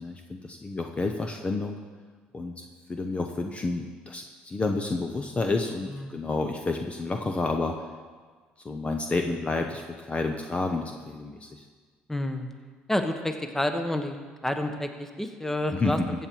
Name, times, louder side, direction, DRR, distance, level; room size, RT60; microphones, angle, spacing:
voice 1, 0.0-1.8 2.3-2.6 2.9-7.8 8.6-11.6 15.7-16.1, left 3 dB, 25° left, 4 dB, 0.9 m, -30 dB
voice 2, 5.9-6.2 12.1-12.5 12.9-14.2 14.4-16.0, left 1 dB, 10° left, 6 dB, 1.1 m, -29 dB
15.0 x 7.5 x 4.6 m, 1.5 s
supercardioid pair, 80°, 4 cm